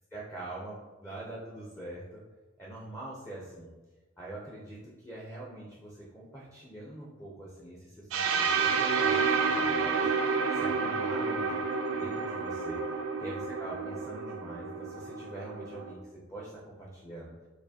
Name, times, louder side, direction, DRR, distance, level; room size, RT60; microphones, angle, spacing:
voice 1, 0.1-2.2 2.6-3.7 4.2-10.1 10.5-11.6 11.9-16.5 16.8-17.3, right 2 dB, 10° left, -5 dB, 0.5 m, -44 dB
sound 1, 8.1-15.9, right 5 dB, 85° right, 0.4 m, -30 dB
4.6 x 2.5 x 2.7 m, 1.2 s
head